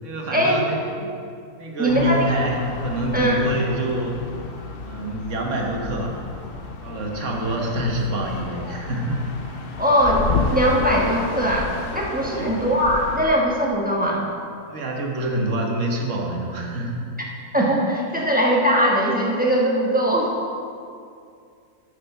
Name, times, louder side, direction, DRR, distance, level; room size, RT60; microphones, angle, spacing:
voice 1, 0.0-1.1 1.6-4.2 4.8-6.2 6.8-9.2 12.3-12.6 14.7-17.0, right 2 dB, 55° right, 0 dB, 1.4 m, -26 dB
voice 2, 1.8-2.3 3.1-3.4 9.8-10.2 10.5-14.2 17.5-20.3, equal, 5° right, -4 dB, 1.0 m, -20 dB
sound 1, 1.9-13.3, left 4 dB, 50° left, 0.7 m, -31 dB
6.5 x 6.5 x 6.6 m, 2.4 s
omnidirectional pair, 1.6 m